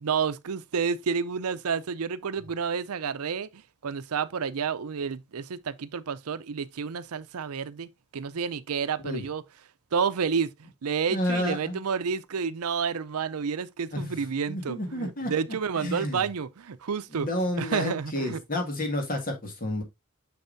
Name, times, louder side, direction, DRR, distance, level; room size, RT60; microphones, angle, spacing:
voice 1, 0.0-9.4 9.9-17.3 17.6-18.4, right 6 dB, 85° right, 0.6 m, -30 dB
voice 2, 11.1-11.8 13.9-14.2 14.5-15.3 15.8-16.3 17.1-19.8, left 1 dB, 40° left, 2.1 m, -30 dB
6.9 x 6.5 x 2.6 m
head